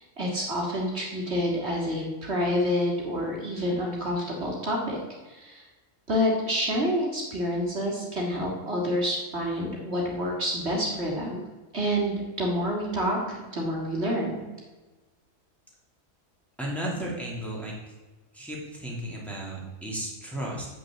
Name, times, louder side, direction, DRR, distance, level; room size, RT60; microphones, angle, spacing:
voice 1, 0.0-5.0 5.3-5.7 6.1-11.4 11.7-14.4, equal, 50° right, -2 dB, 2.1 m, -28 dB
voice 2, 16.6-17.9 18.3-20.7, right 1 dB, ahead, -4 dB, 2.6 m, -34 dB
7.6 x 6.2 x 7.4 m, 1.2 s
omnidirectional pair, 1.4 m